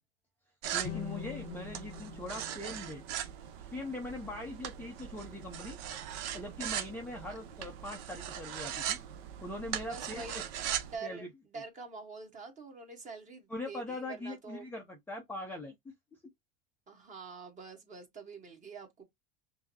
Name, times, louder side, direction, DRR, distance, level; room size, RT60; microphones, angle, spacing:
sound 1, 0.6-11.0, right 10 dB, 50° right, 0.7 m, -40 dB
voice 1, 0.7-3.0 3.6-5.8 6.3-9.0 9.4-10.4 11.0-11.3 13.5-15.7, left 1 dB, 5° left, 0.5 m, -41 dB
sound 2, 0.8-4.1, left 10 dB, 55° left, 0.8 m, -45 dB
voice 2, 9.9-10.5 10.9-14.7 16.9-19.0, right 4 dB, 25° right, 1.4 m, -46 dB
5.5 x 2.0 x 2.8 m
supercardioid pair, 130°, 31 cm